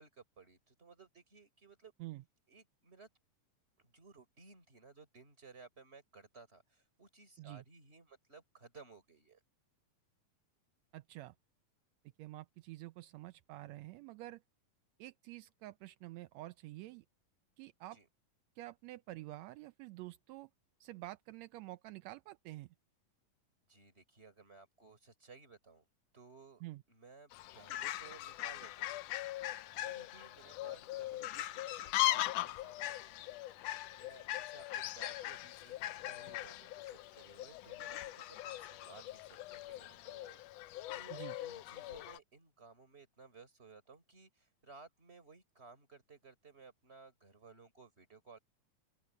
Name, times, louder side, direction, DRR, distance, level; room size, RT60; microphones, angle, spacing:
voice 1, 0.0-1.9 2.5-3.1 3.8-9.4 17.9-18.1 23.7-25.8 26.1-26.6 26.9-29.0 29.8-31.6 31.9-33.1 33.9-48.4, right 4 dB, 20° right, 4.2 m, -58 dB
voice 2, 10.9-11.3 12.2-14.4 15.0-17.0 17.6-18.0 18.6-20.5 20.8-22.7 26.6-26.8 41.1-41.3, right 17 dB, 80° right, 1.5 m, -48 dB
Fowl, 27.3-42.2, left 15 dB, 85° left, 1.4 m, -40 dB
open air
omnidirectional pair, 3.7 m